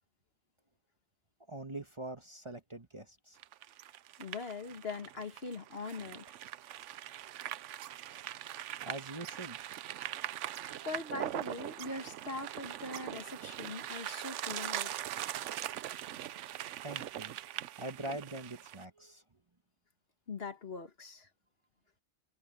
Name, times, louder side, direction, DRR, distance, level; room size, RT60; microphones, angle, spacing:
voice 1, 1.5-3.4 8.8-9.6 16.8-17.4 17.8-19.2, right 1 dB, 25° right, 1.4 m, -43 dB
sound 1, 3.4-18.8, right 12 dB, 80° right, 0.9 m, -41 dB
voice 2, 4.2-6.4 10.9-14.9 20.3-21.3, left 3 dB, 55° left, 1.8 m, -42 dB
omnidirectional pair, 1.2 m